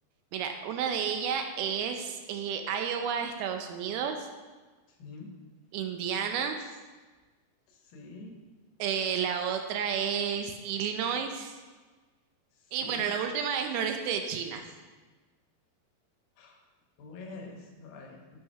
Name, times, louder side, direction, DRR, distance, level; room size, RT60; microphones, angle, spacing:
voice 1, 0.3-4.2 5.7-6.6 8.8-11.5 12.7-14.6, right 7 dB, 80° right, 5 dB, 2.4 m, -31 dB
voice 2, 5.0-5.3 7.7-8.4 12.8-13.1 16.4-16.6 17.0-18.4, left 3 dB, 70° left, 1 dB, 2.8 m, -46 dB
10.5 x 3.7 x 5.4 m, 1.3 s
omnidirectional pair, 4.5 m